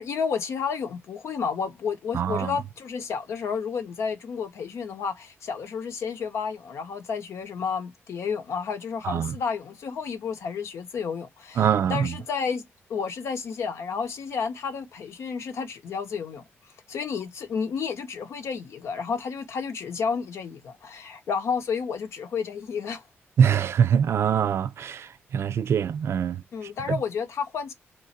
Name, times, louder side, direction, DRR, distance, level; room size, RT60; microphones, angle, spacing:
voice 1, 0.0-16.4 16.9-23.0 26.5-27.7, left 6 dB, 75° left, 0.8 m, -31 dB
voice 2, 2.1-2.5 9.0-9.3 11.6-12.1 23.4-25.1 25.3-26.4 26.9-27.0, right 8 dB, 65° right, 0.4 m, -23 dB
3.0 x 2.5 x 4.2 m
cardioid pair, 100°, 5 cm